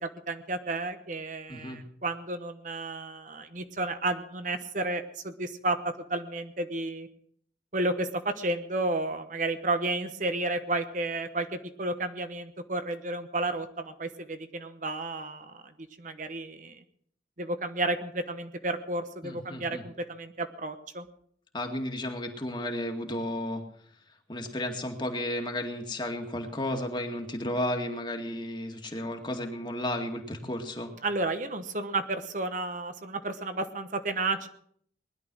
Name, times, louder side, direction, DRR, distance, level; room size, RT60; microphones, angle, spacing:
voice 1, 0.0-7.1 7.7-15.7 16.0-16.8 17.4-21.1 31.0-34.5, right 2 dB, 45° right, 8 dB, 1.1 m, -32 dB
voice 2, 19.2-19.8 21.5-23.6 24.3-30.9, left 1 dB, 25° left, 4 dB, 2.1 m, -33 dB
20.0 x 11.5 x 6.3 m, 0.63 s
head